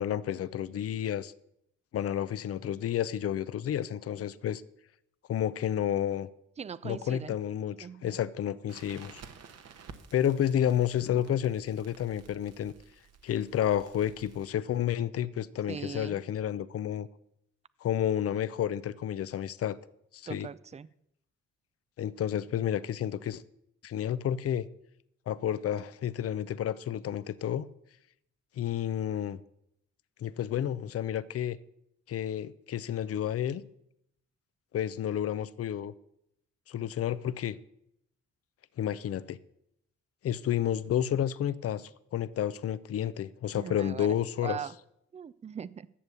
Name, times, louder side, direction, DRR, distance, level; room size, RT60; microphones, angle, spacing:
voice 1, 0.0-1.3 1.9-4.6 5.3-6.3 6.8-9.2 10.1-12.7 13.2-17.1 17.8-19.8 20.1-20.5 22.0-23.4 23.8-24.7 25.3-27.7 28.6-29.4 30.2-31.6 32.1-33.6 34.7-35.9 36.7-37.6 38.8-39.4 40.2-44.6, left 10 dB, 50° left, 17 dB, 0.6 m, -30 dB
voice 2, 6.6-7.4 7.8-8.2 15.7-16.2 20.3-20.9 43.5-44.1 44.4-44.7 45.1-45.9, right 7 dB, 25° right, 18 dB, 0.4 m, -40 dB
Crackle, 8.7-14.5, right 6 dB, 55° right, 1.2 m, -53 dB
11.5 x 7.0 x 6.8 m, 0.78 s
cardioid pair, 90°, 30 cm